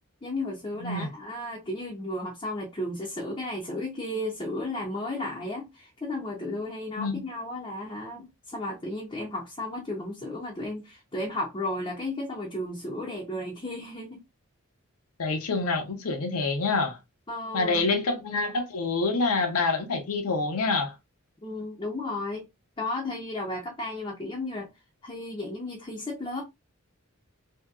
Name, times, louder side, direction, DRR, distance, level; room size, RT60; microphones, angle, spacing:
voice 1, 0.2-14.2 17.3-17.9 21.4-22.4 22.8-24.7 25.0-26.4, left 1 dB, 20° left, 0.5 m, -34 dB
voice 2, 15.2-17.0 17.5-20.9, left 3 dB, 80° left, 0.7 m, -27 dB
2.7 x 2.7 x 2.3 m
head